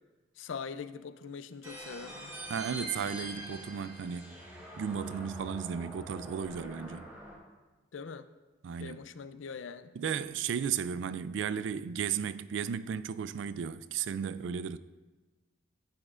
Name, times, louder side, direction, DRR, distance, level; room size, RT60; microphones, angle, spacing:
voice 1, 0.4-2.3 7.9-8.3 8.8-9.9, left 5 dB, 75° left, 0.4 m, -42 dB
sound 1, 1.6-7.4, right 1 dB, 10° right, 1.5 m, -44 dB
voice 2, 2.5-4.4 4.8-7.1 8.6-9.0 10.0-14.8, right 7 dB, 70° right, 0.3 m, -34 dB
14.0 x 8.4 x 2.5 m
head